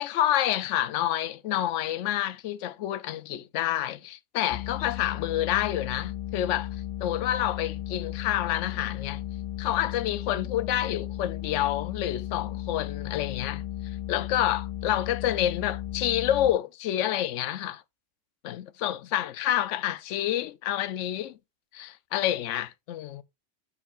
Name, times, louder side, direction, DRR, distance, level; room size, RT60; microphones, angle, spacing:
voice 1, 0.0-6.7 7.0-9.2 9.6-13.6 14.1-17.8 18.4-21.4 21.7-23.2, left 12 dB, 80° left, 0.9 m, -28 dB
sound 1, 4.5-16.5, left 14 dB, 50° left, 0.5 m, -35 dB
12.0 x 4.5 x 2.4 m
omnidirectional pair, 1.3 m